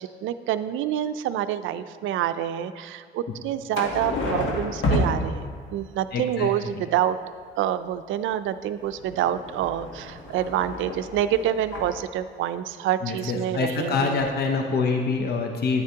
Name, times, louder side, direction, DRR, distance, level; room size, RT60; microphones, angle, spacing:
voice 1, 0.0-5.4 5.7-7.2 7.6-14.2, right 11 dB, 85° right, 12 dB, 0.4 m, -27 dB
sound 1, 3.7-5.9 8.8-12.0 13.8-13.9 14.1-14.3, left 1 dB, 80° left, 1.2 m, -30 dB
voice 2, 6.1-6.5 13.0-15.8, left 4 dB, 55° left, 3 dB, 0.7 m, -25 dB
9.5 x 9.1 x 2.8 m, 2.1 s
cardioid pair, 90°, 20 cm